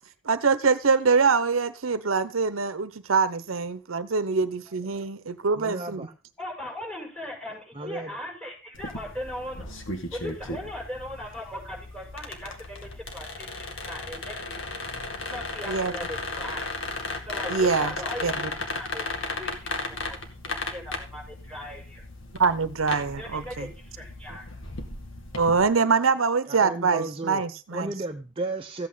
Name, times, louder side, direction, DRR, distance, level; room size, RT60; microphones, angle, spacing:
voice 1, 0.2-6.1 15.7-15.9 17.5-17.9 18.2-18.5 22.4-23.7 25.4-27.9, right 5 dB, 85° right, 0.8 m, -24 dB
voice 2, 5.6-6.1 7.7-8.1 25.5-25.8 26.5-27.4 27.7-28.9, right 2 dB, 25° right, 0.8 m, -34 dB
voice 3, 6.4-14.6 15.3-16.7 17.2-18.4 18.7-20.2 20.5-22.0 23.2-24.5, left 1 dB, 5° left, 5.8 m, -39 dB
sound 1, 8.7-25.6, left 2 dB, 65° left, 2.2 m, -35 dB
14.5 x 8.6 x 4.0 m
head